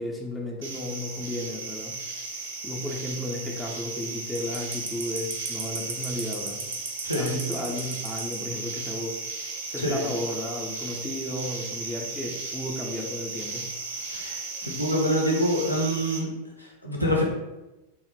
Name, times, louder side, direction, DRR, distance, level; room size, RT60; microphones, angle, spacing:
voice 1, 0.0-2.0 2.6-6.6 7.1-9.2 9.7-13.7, left 1 dB, 10° left, -2 dB, 0.4 m, -33 dB
sound 1, 0.6-16.2, right 3 dB, 60° right, 0.4 m, -35 dB
voice 2, 7.0-7.4 9.8-10.0 14.1-16.3 16.6-17.2, equal, 85° left, -2 dB, 0.5 m, -26 dB
2.1 x 2.0 x 3.0 m, 1.0 s
figure-of-eight pair, 90°, 0 cm